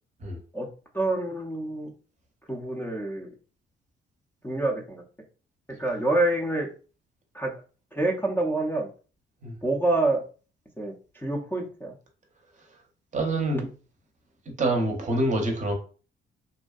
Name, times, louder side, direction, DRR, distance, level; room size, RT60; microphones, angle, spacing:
voice 1, 0.9-1.9 2.5-3.3 4.4-5.0 5.8-6.7 7.3-7.5 7.9-8.9 9.6-10.2 10.8-11.9, right 2 dB, 10° left, 0.5 m, -27 dB
voice 2, 13.1-13.7 14.6-15.7, right 1 dB, 40° right, 0.7 m, -26 dB
2.6 x 2.1 x 2.3 m
cardioid pair, 90°, 20 cm